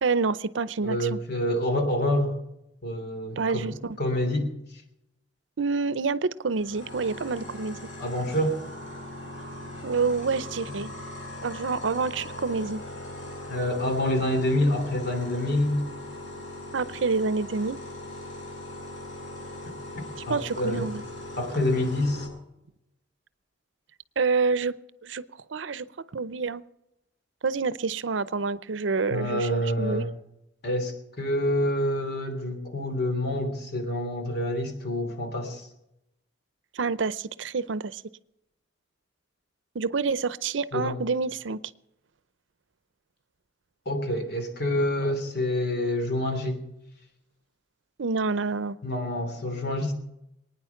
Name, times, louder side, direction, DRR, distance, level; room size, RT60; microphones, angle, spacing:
voice 1, 0.0-1.2 3.4-4.0 5.6-7.8 9.8-10.9 11.4-12.8 16.7-17.8 20.3-21.0 24.2-24.7 25.0-25.2 25.5-25.9 26.1-26.6 27.4-30.1 36.7-38.0 39.7-41.6 48.0-48.8, right 4 dB, 80° right, 17 dB, 0.6 m, -27 dB
voice 2, 0.8-2.3 2.8-4.5 8.0-8.6 10.7-10.8 13.5-15.8 20.3-20.9 21.4-22.3 29.1-30.1 30.6-35.7 40.7-41.0 43.8-46.6 48.8-49.9, left 1 dB, 60° left, 5 dB, 3.1 m, -27 dB
sound 1, 6.5-22.3, left 1 dB, 85° left, 6.3 m, -40 dB
23.0 x 9.6 x 5.9 m, 0.87 s
head